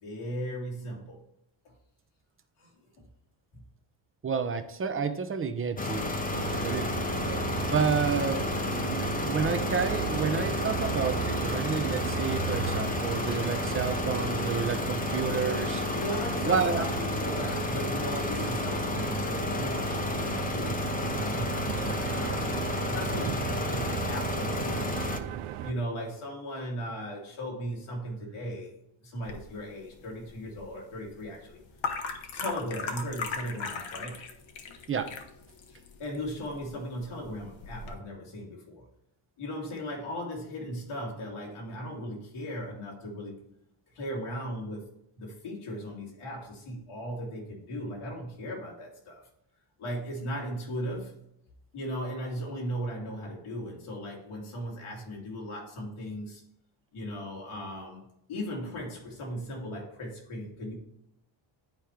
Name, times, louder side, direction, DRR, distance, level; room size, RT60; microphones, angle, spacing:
voice 1, 0.0-1.2 2.6-2.7 3.0-3.1 3.5-3.7 15.9-25.0 25.6-28.7 29.0-31.6 32.3-34.3 35.7-38.9 39.4-43.5 43.9-44.9 45.2-49.2 49.8-51.2 51.7-56.4 56.9-58.0 58.3-60.8, equal, 85° left, -2 dB, 2.9 m, -37 dB
voice 2, 4.2-6.1 6.6-6.9 7.6-8.5 9.2-15.8 16.4-16.8 34.9-35.2, right 6 dB, 25° right, 8 dB, 0.8 m, -30 dB
sound 1, 5.8-25.2, left 2 dB, 15° left, 0.8 m, -31 dB
sound 2, 6.3-25.7, right 10 dB, 80° right, 0.6 m, -36 dB
sound 3, 29.2-37.9, left 4 dB, 70° left, 1.2 m, -39 dB
10.5 x 4.4 x 3.2 m, 0.80 s
cardioid pair, 95°, 48 cm